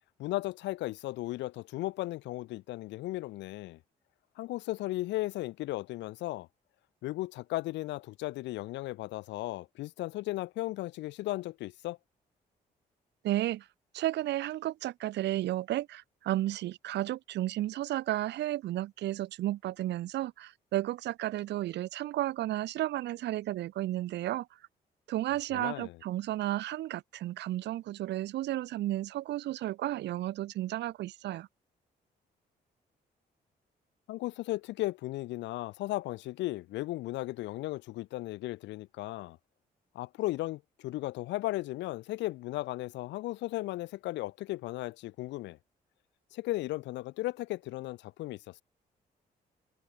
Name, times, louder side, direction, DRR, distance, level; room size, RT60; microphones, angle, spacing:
voice 1, 0.2-3.8 4.4-6.5 7.0-12.0 25.5-26.0 34.1-39.4 39.9-45.6 46.3-48.6, left 17 dB, 85° left, 0.9 m, -36 dB
voice 2, 13.2-13.7 13.9-24.5 25.1-31.5, right 14 dB, 75° right, 0.6 m, -33 dB
supercardioid pair, 60°, 18 cm